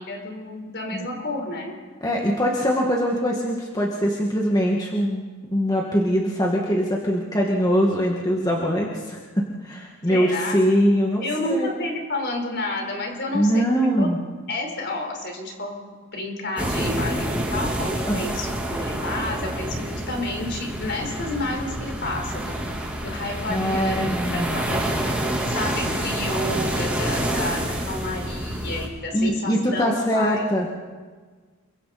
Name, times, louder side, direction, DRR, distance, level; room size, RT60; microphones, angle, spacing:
voice 1, 0.0-1.8 10.1-10.6 11.2-14.1 14.5-15.8 16.1-22.6 23.0-30.4, left 2 dB, 50° left, 2 dB, 4.4 m, -30 dB
voice 2, 2.0-11.2 11.5-11.7 13.3-14.2 18.1-18.2 23.5-24.6 29.1-30.7, equal, 20° left, -2 dB, 2.0 m, -22 dB
sound 1, 16.6-28.9, right 1 dB, 5° right, 3.2 m, -28 dB
28.5 x 23.0 x 4.3 m, 1.4 s
head